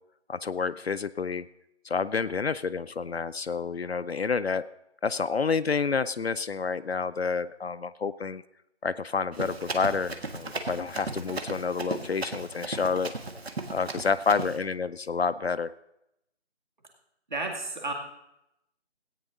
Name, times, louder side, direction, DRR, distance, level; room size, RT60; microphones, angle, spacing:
voice 1, 0.3-1.5 1.8-4.6 5.0-8.4 8.8-13.1 13.7-15.7, left 5 dB, 60° left, 13 dB, 0.5 m, -29 dB
Run, 9.3-14.6, right 3 dB, 60° right, 1.5 m, -36 dB
voice 2, 17.3-17.9, right 2 dB, 40° right, 2 dB, 2.1 m, -32 dB
16.5 x 9.2 x 3.9 m, 0.83 s
figure-of-eight pair, 170°, 35 cm